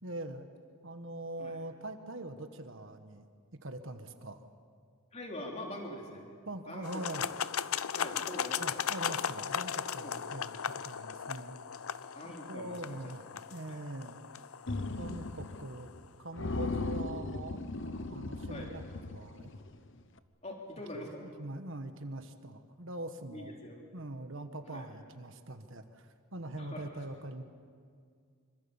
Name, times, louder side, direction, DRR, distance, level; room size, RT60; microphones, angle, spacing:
voice 1, 0.0-0.5 0.8-3.3 3.6-4.5 6.4-7.2 8.6-10.5 10.8-11.6 12.2-13.2 13.5-14.2 15.0-15.9 16.2-17.6 18.0-19.5 20.9-23.6 23.9-27.4, right 1 dB, 60° right, 7 dB, 1.4 m, -43 dB
voice 2, 5.1-6.3 6.7-7.3 7.9-8.8 10.0-10.1 12.1-13.1 13.7-13.8 15.0-15.3 18.5-18.7 20.4-21.3 23.3-23.8 24.7-24.9 26.6-26.9, left 1 dB, 30° left, 0 dB, 3.4 m, -44 dB
sound 1, 6.8-15.9, left 8 dB, 75° left, 0.6 m, -37 dB
sound 2, 14.7-15.7 15.9-16.1 16.4-19.7, left 2 dB, 55° left, 1.0 m, -37 dB
26.0 x 25.0 x 7.2 m, 2.1 s
head